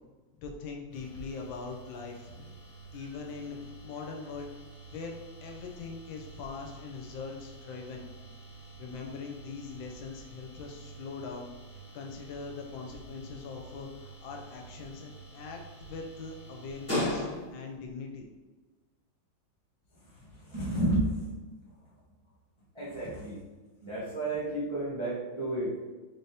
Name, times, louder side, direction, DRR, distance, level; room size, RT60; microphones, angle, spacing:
voice 1, 0.4-2.5 2.9-4.5 4.9-5.2 5.4-8.1 8.8-11.5 11.9-18.3, left 5 dB, 80° left, 2 dB, 1.3 m, -42 dB
sound 1, 0.9-17.8, equal, 10° left, 1.0 m, -43 dB
voice 2, 20.3-21.4 22.7-23.4 23.8-25.8, right 1 dB, 40° right, -9 dB, 0.4 m, -31 dB
4.0 x 3.3 x 2.8 m, 1.2 s
omnidirectional pair, 2.1 m